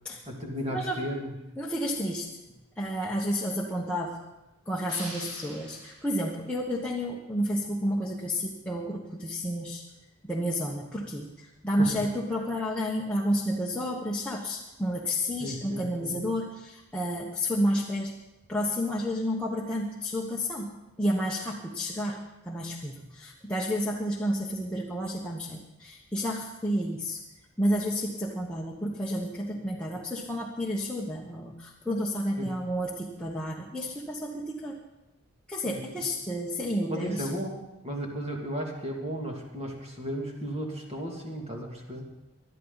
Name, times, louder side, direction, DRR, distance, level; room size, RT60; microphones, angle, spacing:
voice 1, 0.3-1.4 11.8-11.9 15.4-16.2 32.4-32.5 35.7-36.0 36.9-37.6 37.8-42.1, equal, 30° right, 0 dB, 2.6 m, -35 dB
voice 2, 1.6-2.3 2.8-4.2 4.7-9.8 10.2-18.1 18.5-27.2 27.6-34.7 35.5-37.3, equal, 5° left, -4 dB, 1.1 m, -31 dB
sound 1, 4.9-6.4, right 1 dB, 55° right, 4.8 m, -44 dB
21.0 x 12.0 x 4.1 m, 0.97 s
head